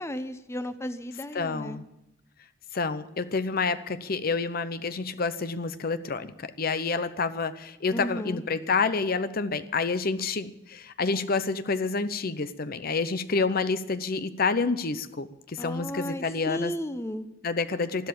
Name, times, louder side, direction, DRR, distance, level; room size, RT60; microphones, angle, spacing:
voice 1, 0.0-1.8 7.9-8.4 15.6-17.3, equal, 15° left, 10 dB, 0.7 m, -34 dB
voice 2, 1.3-1.8 2.7-16.7 17.4-18.1, left 4 dB, 50° left, 12 dB, 0.7 m, -28 dB
12.5 x 12.5 x 8.4 m, 0.87 s
head